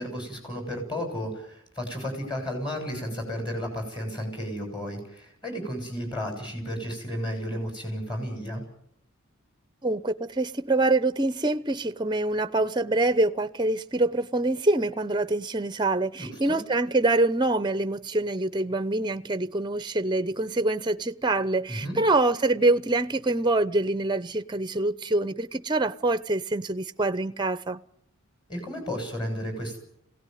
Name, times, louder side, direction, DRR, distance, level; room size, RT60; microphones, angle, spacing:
voice 1, 0.0-8.6 16.2-16.6 21.7-22.0 28.5-29.8, equal, 20° left, 7.4 m, -33 dB
voice 2, 9.8-27.8, right 2 dB, 20° right, 0.8 m, -25 dB
22.5 x 17.5 x 9.4 m
head